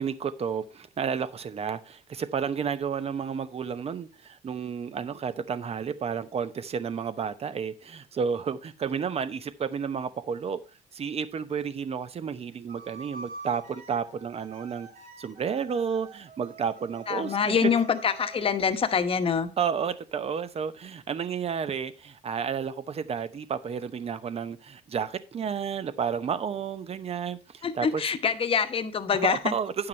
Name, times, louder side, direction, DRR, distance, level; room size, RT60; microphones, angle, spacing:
voice 1, 0.0-10.6 10.9-14.9 15.2-17.7 19.6-28.0 29.2-29.9, right 7 dB, 35° right, 0.8 m, -31 dB
sound 1, 12.7-18.6, right 3 dB, 70° right, 3.9 m, -46 dB
voice 2, 17.1-19.5 27.6-29.5, left 6 dB, 35° left, 1.1 m, -25 dB
9.5 x 5.8 x 4.4 m
cardioid pair, 110°, 17 cm